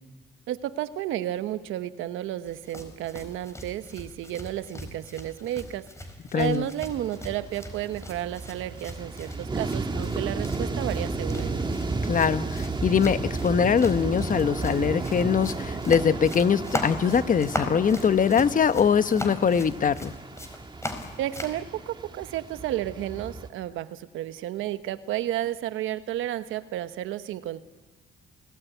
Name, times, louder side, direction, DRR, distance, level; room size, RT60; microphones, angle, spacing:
voice 1, 0.5-5.9 6.3-11.7 21.2-27.6, right 13 dB, 90° right, 12 dB, 1.1 m, -32 dB
sound 1, 2.4-21.6, left 1 dB, 15° left, 4.4 m, -39 dB
voice 2, 6.3-6.7 12.0-20.1, left 7 dB, 40° left, 12 dB, 1.1 m, -22 dB
sound 2, 6.9-23.5, right 3 dB, 25° right, 1.9 m, -33 dB
28.0 x 19.5 x 9.3 m, 1.3 s
cardioid pair, 90°, 20 cm